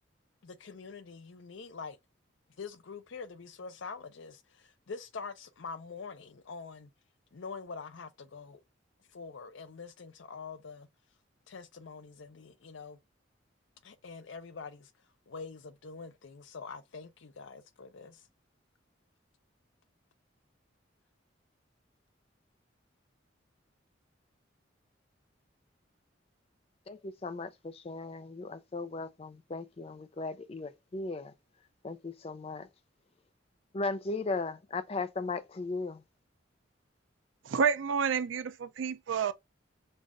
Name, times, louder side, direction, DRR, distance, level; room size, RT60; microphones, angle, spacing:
voice 1, 0.4-2.0 2.6-6.9 7.3-8.6 9.1-10.9 11.5-13.0 13.8-14.9 15.3-18.2, left 5 dB, 75° left, 0.6 m, -45 dB
voice 2, 26.9-31.3 31.8-32.7 33.7-36.0, left 3 dB, 30° left, 0.4 m, -37 dB
voice 3, 37.5-39.3, right 6 dB, 80° right, 0.4 m, -29 dB
5.2 x 2.4 x 2.4 m
head